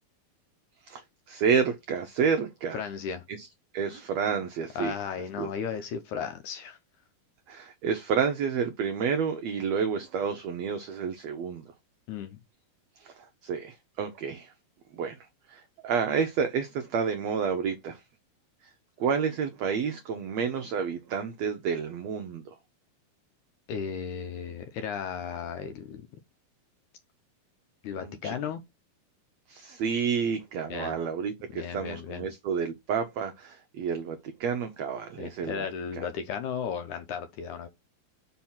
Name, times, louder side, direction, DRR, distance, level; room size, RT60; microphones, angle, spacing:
voice 1, 1.3-2.8 3.3-3.5 3.7-4.9 5.4-5.5 7.5-11.7 13.0-14.5 14.9-15.2 15.5-18.0 19.0-22.5 28.0-28.3 29.5-35.7 36.0-36.1, right 6 dB, 85° right, 1.5 m, -30 dB
voice 2, 2.7-3.2 4.8-6.8 12.1-12.4 23.7-26.1 27.8-28.6 30.7-31.0 31.5-32.3 35.2-37.7, left 7 dB, 75° left, 1.9 m, -35 dB
5.2 x 4.4 x 5.6 m
omnidirectional pair, 4.0 m